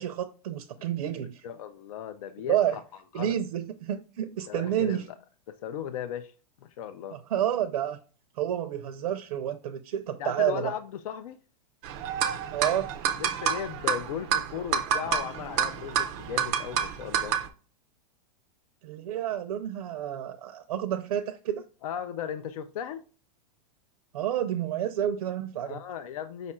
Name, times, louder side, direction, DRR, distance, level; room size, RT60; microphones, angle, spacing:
voice 1, 0.0-1.5 2.5-2.8 3.1-5.1 7.1-8.0 8.4-10.7 12.5-12.9 18.8-21.6 24.1-25.8, right 11 dB, 80° right, 0.5 m, -29 dB
voice 2, 1.4-2.8 3.2-3.4 4.5-5.1 5.5-6.3 6.6-7.2 10.2-11.4 13.2-17.4 21.8-23.0 25.6-26.5, left 9 dB, 65° left, 0.4 m, -36 dB
sound 1, 11.8-17.5, right 8 dB, 25° right, 0.4 m, -29 dB
5.2 x 2.4 x 4.2 m
supercardioid pair, 170°, 20 cm